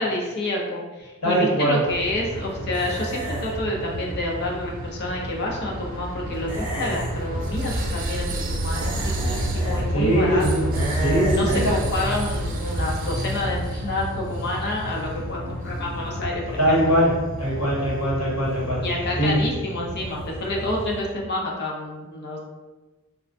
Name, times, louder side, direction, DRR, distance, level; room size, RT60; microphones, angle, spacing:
voice 1, 0.0-10.7 11.3-16.8 18.8-22.4, left 1 dB, 50° left, -2 dB, 0.6 m, -29 dB
voice 2, 1.2-1.8 9.9-10.7 11.0-11.7 16.6-18.8 19.2-19.4, right 1 dB, 80° left, -6 dB, 1.1 m, -21 dB
sound 1, 1.9-21.0, right 1 dB, 40° right, 0.3 m, -30 dB
sound 2, 2.7-3.5 6.5-7.1 8.7-9.8 10.7-11.7, right 1 dB, 10° right, 1.0 m, -30 dB
3.6 x 2.2 x 2.5 m, 1.2 s
head